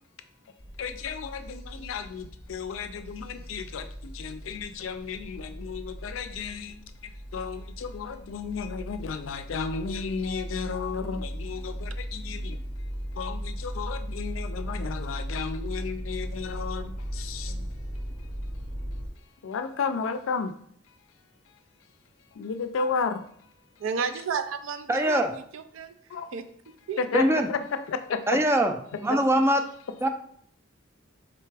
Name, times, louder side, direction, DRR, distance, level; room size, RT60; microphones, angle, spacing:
sound 1, 0.6-19.1, equal, 55° right, 1.1 m, -37 dB
voice 1, 0.8-6.8 7.3-12.6 13.2-17.7 19.4-20.5 22.4-23.2 26.1-26.3 27.0-27.6 27.9-28.4, left 5 dB, 80° left, 0.4 m, -33 dB
voice 2, 23.8-26.4 26.9-27.0, right 6 dB, 80° right, 0.4 m, -33 dB
voice 3, 24.9-25.3 27.1-27.5 28.3-28.8 29.0-29.6 30.0-30.1, right 1 dB, 15° right, 0.3 m, -22 dB
3.9 x 3.3 x 3.3 m
head